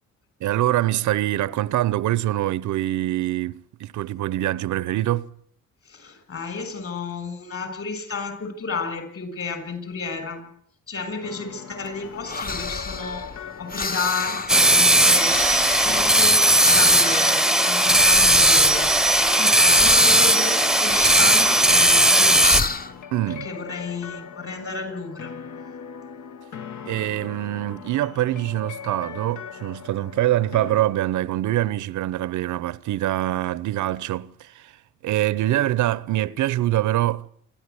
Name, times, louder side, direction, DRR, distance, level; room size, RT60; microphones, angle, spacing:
voice 1, 0.4-5.3 23.1-23.5 26.9-34.7 35.0-37.3, right 14 dB, 80° right, 0.8 m, -24 dB
voice 2, 5.9-10.5 10.9-15.4 15.8-18.9 19.4-22.6 23.3-25.3, left 4 dB, 50° left, 7.3 m, -32 dB
sound 1, 11.2-30.8, left 7 dB, 75° left, 1.8 m, -40 dB
sound 2, 11.8-23.0, left 4 dB, 30° left, 1.2 m, -31 dB
sound 3, 14.5-22.6, right 1 dB, ahead, 0.9 m, -17 dB
27.5 x 12.0 x 10.0 m
cardioid pair, 90°, 30 cm